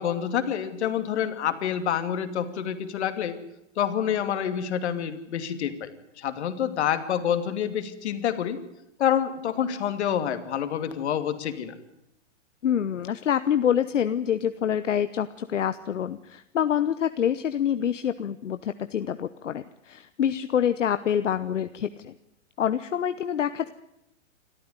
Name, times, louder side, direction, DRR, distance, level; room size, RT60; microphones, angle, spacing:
voice 1, 0.0-3.4 3.8-8.6 9.0-11.8, left 9 dB, 65° left, 9 dB, 2.7 m, -27 dB
voice 2, 12.6-22.1 22.6-23.7, left 9 dB, 85° left, 12 dB, 1.0 m, -26 dB
25.5 x 14.0 x 9.8 m, 0.84 s
hypercardioid pair, 125°, 36 cm